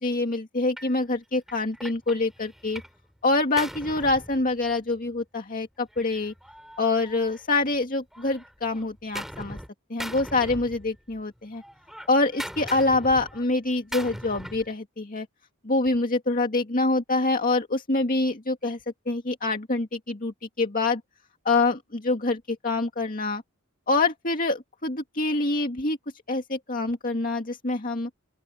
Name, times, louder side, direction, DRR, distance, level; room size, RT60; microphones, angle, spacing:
voice 1, 0.0-2.8 3.2-6.3 6.8-9.6 9.9-11.6 12.1-15.3 15.6-18.8 19.1-21.0 21.5-23.4 23.9-26.0 26.3-28.1, left 3 dB, 45° left, 2.2 m, -25 dB
Gunshot gunfire, 0.8-1.0 1.5-3.0 3.3-5.0 5.9-7.8 8.1-9.7 10.0-11.2 11.5-14.7, equal, ahead, 7.1 m, -40 dB
open air
head